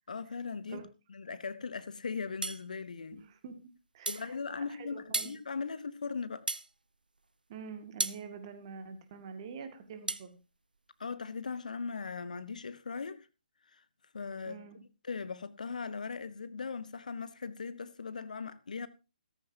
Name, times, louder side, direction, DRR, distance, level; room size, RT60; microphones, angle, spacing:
voice 1, 0.1-0.8 1.1-3.2 4.1-6.5 11.0-13.3 13.7-13.8 14.1-14.6 15.0-18.9, left 5 dB, 60° left, 0.9 m, -39 dB
sound 1, 2.4-2.6 4.1-4.3 5.1-5.4 6.5-6.7 8.0-8.2 10.1-10.3, right 2 dB, 75° right, 0.7 m, -33 dB
voice 2, 3.1-3.6 3.9-5.4 7.5-10.4 14.5-14.8, right 6 dB, 35° right, 2.1 m, -46 dB
14.5 x 14.0 x 2.8 m
figure-of-eight pair, 135°, 5 cm